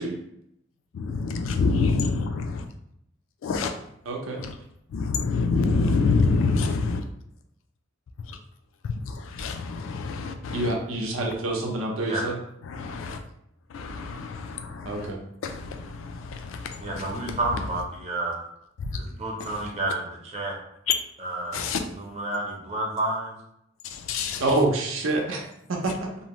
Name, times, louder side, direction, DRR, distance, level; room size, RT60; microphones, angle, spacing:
voice 1, 1.0-2.7 3.4-3.7 4.4-4.5 4.9-7.0 8.3-8.4 8.8-10.7 12.7-13.2 13.7-15.1 15.4-17.4 18.8-19.0 19.5-19.6 20.9-21.0 21.5-21.8 23.8-24.4, left 4 dB, 75° left, 0.3 m, -27 dB
voice 2, 4.1-4.4 10.5-12.4 14.8-15.2 24.4-25.4 25.7-26.1, right 2 dB, 90° right, 0.6 m, -26 dB
voice 3, 16.8-18.4 18.9-20.6 21.2-23.3, right 2 dB, 35° right, 0.6 m, -30 dB
2.7 x 2.0 x 2.9 m
head